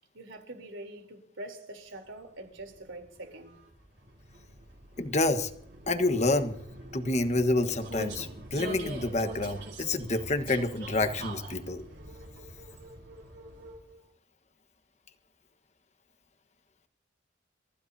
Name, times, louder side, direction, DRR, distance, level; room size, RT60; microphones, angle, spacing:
voice 1, 0.1-3.6, right 1 dB, 80° right, 3.4 m, -44 dB
Vehicle, 2.2-14.0, right 1 dB, 60° right, 5.9 m, -45 dB
voice 2, 5.0-5.5 5.9-6.5 6.9-11.8, left 2 dB, 35° left, 1.3 m, -28 dB
28.0 x 15.5 x 2.7 m
head